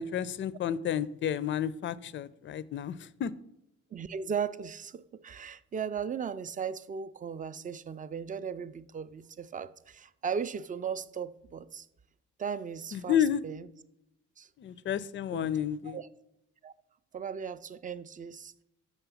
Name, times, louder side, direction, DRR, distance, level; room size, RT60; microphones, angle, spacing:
voice 1, 0.0-3.3 12.9-13.4 14.6-16.0, left 9 dB, 40° left, 0.4 m, -31 dB
voice 2, 3.9-11.9 12.4-13.2 13.4-13.7 14.4-14.5 15.3-15.5 15.9-16.1 16.6-16.7 17.1-18.5, right 7 dB, 25° right, 0.4 m, -37 dB
5.8 x 5.4 x 6.9 m
cardioid pair, 90°, 30 cm